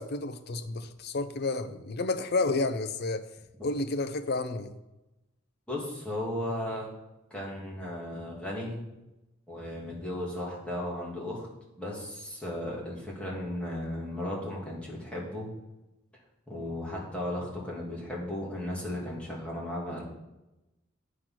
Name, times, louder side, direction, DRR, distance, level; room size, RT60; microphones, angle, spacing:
voice 1, 0.0-3.3 3.6-4.7, left 3 dB, 50° left, 9 dB, 0.6 m, -30 dB
voice 2, 5.7-6.9 7.3-8.8 9.5-11.5 11.8-15.5 16.5-20.0, left 1 dB, 5° left, -5 dB, 2.7 m, -35 dB
9.2 x 6.5 x 5.9 m, 0.98 s
head